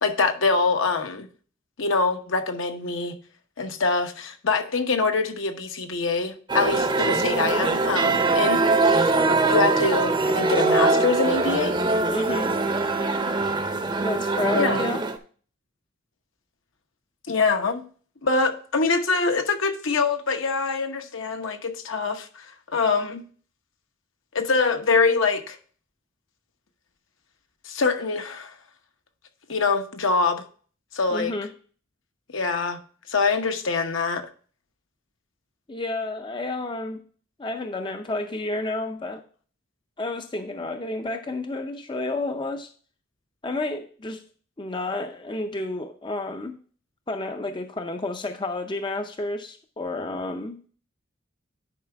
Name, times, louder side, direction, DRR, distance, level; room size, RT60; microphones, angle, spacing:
voice 1, 0.0-1.3 1.8-3.2 3.6-9.2 9.4-11.7 14.5-14.9 17.3-17.8 18.2-23.3 24.3-25.6 27.6-28.5 29.5-30.4 30.9-31.3 32.3-32.8 33.1-34.3, left 4 dB, 70° left, 1.0 m, -24 dB
sound 1, 6.5-15.2, right 3 dB, 20° right, 0.6 m, -22 dB
voice 2, 12.1-12.5 14.0-15.0 31.1-31.5 35.7-37.0 37.4-39.2 40.0-42.7 43.4-44.2 44.6-46.5 47.1-50.6, left 2 dB, 25° left, 0.5 m, -30 dB
10.5 x 4.8 x 3.4 m
head